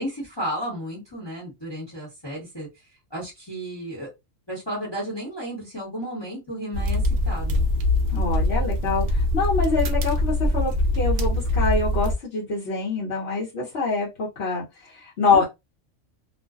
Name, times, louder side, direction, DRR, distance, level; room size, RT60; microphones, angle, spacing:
voice 1, 0.0-2.7 3.1-4.1 4.5-7.6 15.3-15.4, equal, 20° left, -3 dB, 0.9 m, -33 dB
sound 1, 6.7-12.1, left 2 dB, 65° right, 0.5 m, -23 dB
voice 2, 8.1-15.4, left 3 dB, 60° left, -4 dB, 1.0 m, -25 dB
2.5 x 2.1 x 2.3 m, 0.22 s
omnidirectional pair, 1.3 m